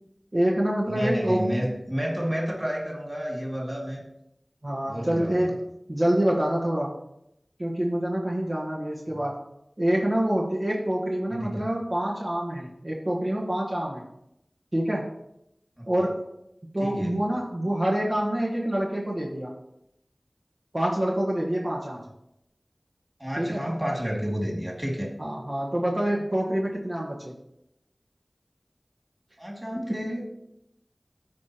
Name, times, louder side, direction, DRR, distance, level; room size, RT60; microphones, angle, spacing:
voice 1, 0.3-1.5 4.6-5.6 5.9-7.0 7.6-9.4 9.8-14.0 14.7-15.1 15.9-16.2 16.7-19.5 20.7-22.1 23.4-23.7 25.2-27.3 29.9-30.0, right 1 dB, 50° right, -4 dB, 1.5 m, -26 dB
voice 2, 0.9-4.0 4.9-5.5 11.3-11.7 15.8-15.9 16.8-17.2 23.2-25.1 29.4-30.2, equal, 15° right, -1 dB, 2.5 m, -30 dB
14.5 x 4.9 x 3.0 m, 0.81 s
wide cardioid pair, 40°, 0 cm